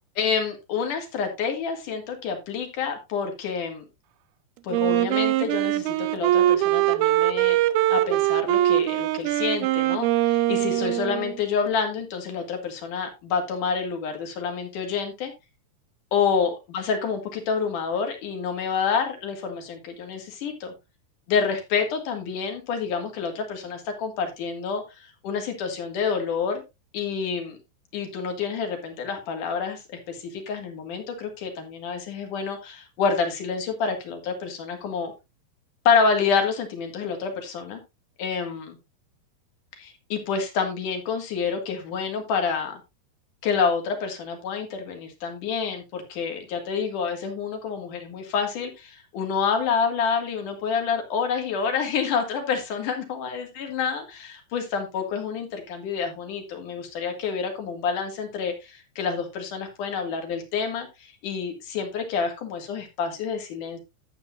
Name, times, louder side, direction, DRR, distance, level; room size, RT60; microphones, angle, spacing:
voice 1, 0.2-3.8 4.6-7.6 7.9-15.3 16.1-20.7 21.3-26.6 26.9-27.6 27.9-35.1 35.8-37.8 38.2-38.8 39.8-42.8 43.4-63.8, left 6 dB, 50° left, 4 dB, 3.2 m, -28 dB
Wind instrument woodwind instrument, 4.7-11.4, right 14 dB, 85° right, 2.3 m, -22 dB
12.0 x 8.5 x 2.5 m, 0.24 s
omnidirectional pair, 5.2 m